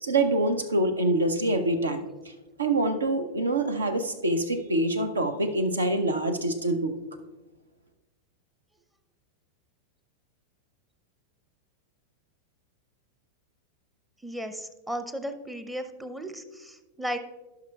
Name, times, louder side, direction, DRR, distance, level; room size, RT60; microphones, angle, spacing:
voice 1, 0.0-2.1 2.6-7.0, right 2 dB, 75° right, 8 dB, 0.7 m, -25 dB
voice 2, 14.2-17.2, equal, 5° right, 8 dB, 0.6 m, -35 dB
16.5 x 5.9 x 2.3 m, 1.1 s
figure-of-eight pair, 90°, 0 cm